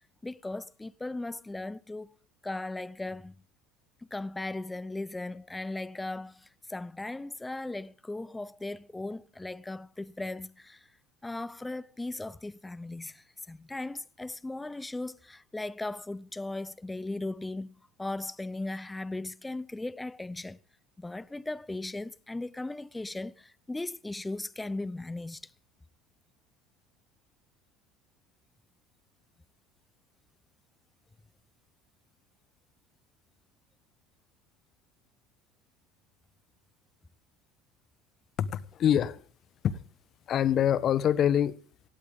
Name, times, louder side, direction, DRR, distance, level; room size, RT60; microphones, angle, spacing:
voice 1, 0.2-2.1 2.4-3.3 4.1-10.9 11.2-17.7 18.0-20.6 21.0-25.4, left 2 dB, 10° left, 0.6 m, -37 dB
voice 2, 38.4-39.2 39.6-39.8 40.3-41.6, left 9 dB, 45° left, 1.1 m, -25 dB
17.0 x 17.0 x 3.6 m
supercardioid pair, 100°, 0 cm